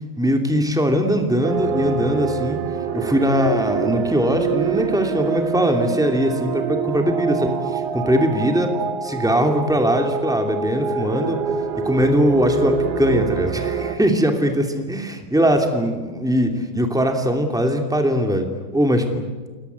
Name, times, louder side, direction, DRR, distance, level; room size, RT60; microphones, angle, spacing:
voice 1, 0.2-2.6 2.9-7.5 7.9-8.7 9.0-11.4 11.8-18.5 18.7-19.3, equal, ahead, 4 dB, 1.4 m, -20 dB
sound 1, 1.4-14.0, right 5 dB, 75° right, 3.5 m, -25 dB
29.5 x 19.0 x 8.2 m, 1.4 s
omnidirectional pair, 4.9 m